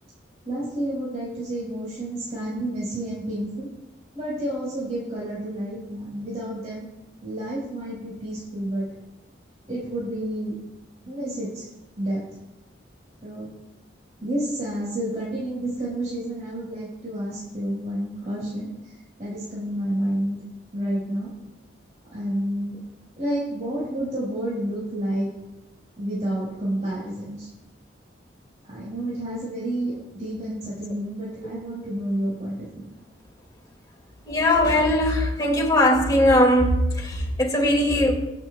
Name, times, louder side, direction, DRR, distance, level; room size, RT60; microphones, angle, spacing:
voice 1, 0.4-3.7 4.1-6.9 7.2-8.9 9.7-10.5 11.0-11.7 12.0-12.2 13.2-13.5 14.2-20.4 20.7-21.3 22.1-22.8 23.2-25.3 26.0-27.5 28.7-32.9, right 1 dB, 40° right, 5.0 m, -30 dB
voice 2, 34.3-38.1, left 1 dB, 20° left, 2.2 m, -20 dB
26.0 x 8.9 x 2.3 m
head